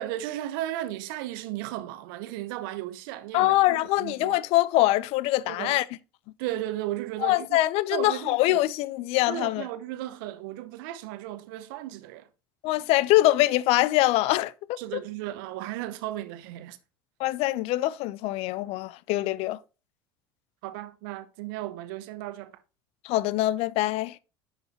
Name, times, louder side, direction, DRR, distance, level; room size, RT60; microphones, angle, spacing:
voice 1, 0.0-4.4 5.5-5.8 6.4-7.6 7.9-8.7 9.3-12.3 14.8-16.8 20.6-22.5, right 14 dB, 70° right, 0.9 m, -35 dB
voice 2, 3.3-5.8 7.2-9.7 12.6-14.8 17.2-19.6 23.0-24.2, left 17 dB, 60° left, 0.5 m, -24 dB
10.5 x 5.7 x 2.8 m
hypercardioid pair, 75°, 12 cm